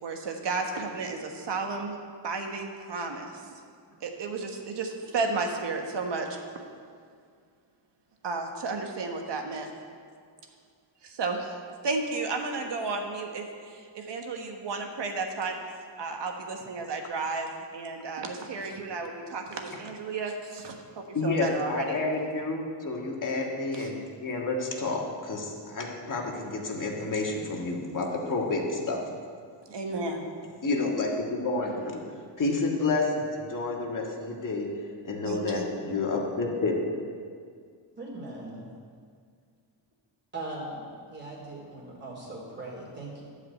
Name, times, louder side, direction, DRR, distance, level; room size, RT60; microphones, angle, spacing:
voice 1, 0.0-2.0 2.2-3.3 4.0-6.4 8.2-9.7 11.0-15.5 16.0-20.7 21.2-22.0 23.7-23.9 29.7-30.2 35.2-35.6, right 3 dB, 60° right, 3 dB, 1.4 m, -33 dB
voice 2, 21.1-29.0 30.6-32.0 32.4-34.7 35.1-36.7, left 3 dB, 40° left, -1 dB, 1.8 m, -29 dB
voice 3, 38.0-38.7 40.3-43.2, right 2 dB, 20° right, -4 dB, 3.0 m, -39 dB
12.0 x 5.0 x 8.2 m, 2.1 s
wide cardioid pair, 125°, 48 cm